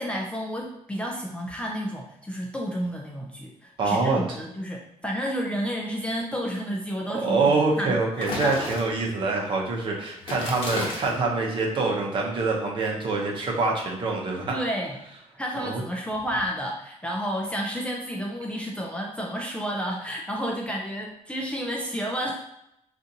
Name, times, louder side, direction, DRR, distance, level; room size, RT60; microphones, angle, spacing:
voice 1, 0.0-7.4 7.8-8.7 10.4-10.5 14.5-15.0 15.4-22.5, equal, 10° left, -2 dB, 0.4 m, -31 dB
voice 2, 3.8-4.2 7.1-14.4 15.6-15.8, right 3 dB, 40° right, -1 dB, 0.8 m, -25 dB
sound 1, 8.2-9.2 10.2-11.2, left 2 dB, 50° left, 1.1 m, -33 dB
3.9 x 2.5 x 2.7 m, 0.79 s
cardioid pair, 155°, 13 cm